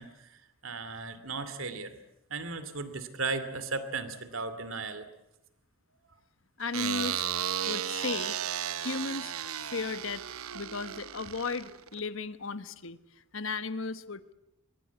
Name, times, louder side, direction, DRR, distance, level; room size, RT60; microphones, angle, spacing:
voice 1, 0.0-2.0 2.3-5.0, right 4 dB, 70° right, 12 dB, 2.6 m, -36 dB
voice 2, 6.6-7.3 7.6-8.4 8.8-9.3 9.6-10.2 10.5-13.0 13.3-14.3, left 4 dB, 65° left, 13 dB, 1.3 m, -35 dB
sound 1, 6.7-12.0, right 10 dB, 85° right, 0.9 m, -34 dB
24.5 x 22.0 x 8.2 m, 0.85 s
head